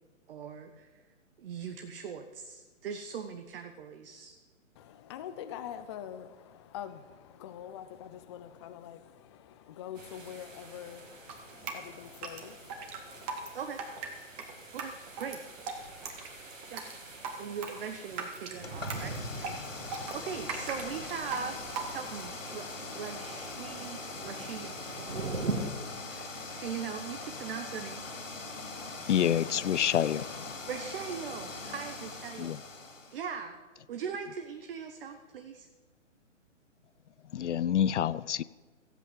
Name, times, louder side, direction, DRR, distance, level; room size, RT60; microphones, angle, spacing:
voice 1, 0.3-1.0 1.4-4.4 13.5-13.8 14.7-15.4 16.7-16.8 17.4-19.6 19.8-21.6 21.9-22.7 22.9-24.8 26.1-28.1 30.7-32.6 33.1-33.6 33.9-35.7, right 7 dB, 45° right, 1.2 m, -40 dB
voice 2, 4.8-13.6, left 10 dB, 25° left, 0.5 m, -45 dB
sound 1, 9.9-25.7, right 3 dB, 90° right, 2.7 m, -43 dB
Drip, 11.3-22.3, right 4 dB, 30° right, 1.9 m, -40 dB
sound 2, 18.6-33.2, left 3 dB, 85° left, 3.5 m, -42 dB
voice 3, 29.0-30.5 32.4-32.6 37.3-38.4, left 10 dB, 65° left, 0.6 m, -28 dB
15.5 x 8.4 x 7.4 m
hypercardioid pair, 140°, 38 cm